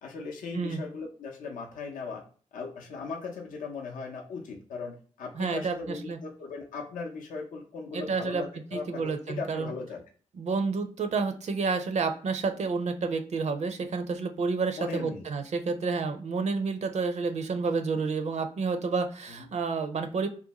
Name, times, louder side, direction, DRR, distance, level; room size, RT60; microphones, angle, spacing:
voice 1, 0.0-2.2 2.5-10.0 14.8-15.3 19.4-19.5, left 4 dB, 80° left, 1 dB, 0.5 m, -38 dB
voice 2, 5.4-6.2 7.9-8.4 8.7-9.7 10.4-20.3, right 4 dB, 55° right, 7 dB, 0.5 m, -30 dB
2.5 x 2.2 x 2.8 m, 0.42 s
supercardioid pair, 45°, 14 cm